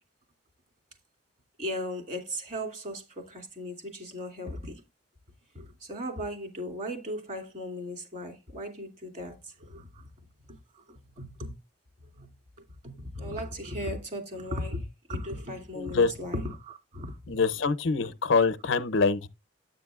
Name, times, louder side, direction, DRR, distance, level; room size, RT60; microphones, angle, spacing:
voice 1, 1.6-4.8 5.5-10.1 10.5-11.5 12.2-12.3 12.8-17.4, equal, 40° right, 2.6 m, -37 dB
voice 2, 15.7-16.1 17.3-19.3, left 4 dB, 70° left, 0.6 m, -25 dB
8.9 x 8.4 x 2.4 m
head